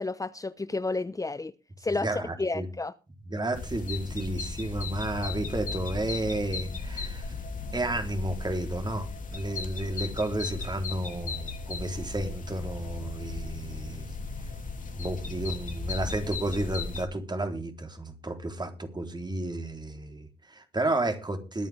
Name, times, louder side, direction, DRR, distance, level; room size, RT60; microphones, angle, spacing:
voice 1, 0.0-1.5 1.8-2.9, left 3 dB, 20° left, 13 dB, 0.9 m, -31 dB
voice 2, 2.0-2.7 3.3-7.3 7.7-14.1 14.9-21.7, right 1 dB, 25° right, 5 dB, 4.0 m, -32 dB
sound 1, 3.5-17.1, left 4 dB, 50° left, 3.0 m, -36 dB
21.5 x 9.3 x 3.6 m, 0.31 s
hypercardioid pair, 45°, 18 cm